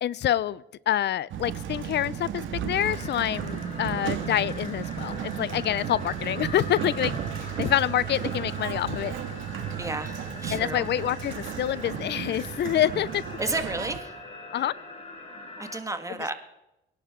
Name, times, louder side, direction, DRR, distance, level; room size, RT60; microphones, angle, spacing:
voice 1, 0.0-9.1 10.5-13.2 14.5-14.7 16.1-16.3, left 11 dB, 60° left, 21 dB, 0.5 m, -27 dB
Sliding door, 1.3-14.0, right 8 dB, 75° right, 1.9 m, -34 dB
sound 1, 2.8-15.8, left 2 dB, 35° left, 5.3 m, -42 dB
voice 2, 9.8-10.2 10.4-10.9 13.4-14.1 15.6-16.3, right 2 dB, 15° right, 7 dB, 1.7 m, -31 dB
24.0 x 11.0 x 3.7 m, 0.92 s
cardioid pair, 90°, 20 cm